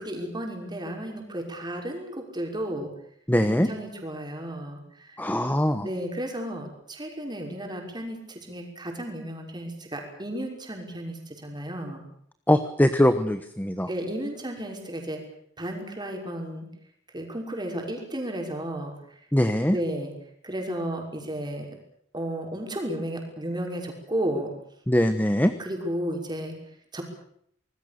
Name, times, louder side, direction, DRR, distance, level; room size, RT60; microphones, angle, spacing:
voice 1, 0.0-2.9 3.5-5.2 5.8-12.0 13.9-15.2 15.6-16.7 17.1-18.9 19.7-20.1 20.4-21.8 22.1-24.5 25.6-26.5 26.9-27.0, right 1 dB, 25° right, 2 dB, 6.0 m, -33 dB
voice 2, 3.3-3.7 5.2-5.9 12.5-13.9 19.3-19.8 24.9-25.5, left 1 dB, 10° left, 10 dB, 1.1 m, -22 dB
26.0 x 20.5 x 6.9 m, 0.68 s
head